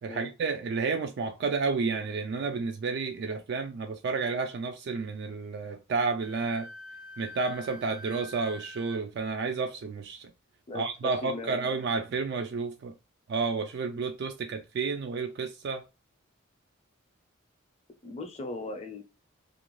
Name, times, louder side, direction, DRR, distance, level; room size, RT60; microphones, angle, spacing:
voice 1, 0.0-6.7 7.2-10.3 10.7-12.9 13.3-15.8, right 4 dB, 55° right, 0.3 m, -31 dB
Wind instrument woodwind instrument, 6.2-9.0, left 1 dB, 85° right, 0.9 m, -46 dB
voice 2, 11.2-11.6 18.0-19.0, left 2 dB, 30° left, 0.5 m, -38 dB
2.5 x 2.2 x 3.0 m
head